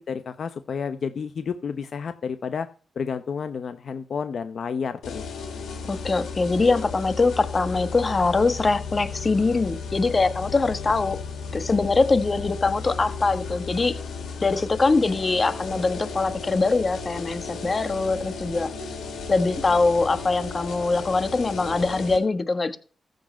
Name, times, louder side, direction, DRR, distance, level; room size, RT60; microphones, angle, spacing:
voice 1, 0.1-2.7 2.9-5.3, left 6 dB, 65° left, 10 dB, 0.8 m, -30 dB
sound 1, 5.0-22.2, left 5 dB, 85° left, 3.3 m, -35 dB
voice 2, 5.8-11.2 11.5-14.0 14.4-18.7 19.3-22.8, left 3 dB, 40° left, 10 dB, 1.4 m, -23 dB
14.5 x 5.2 x 5.4 m, 0.40 s
cardioid pair, 60°, 0 cm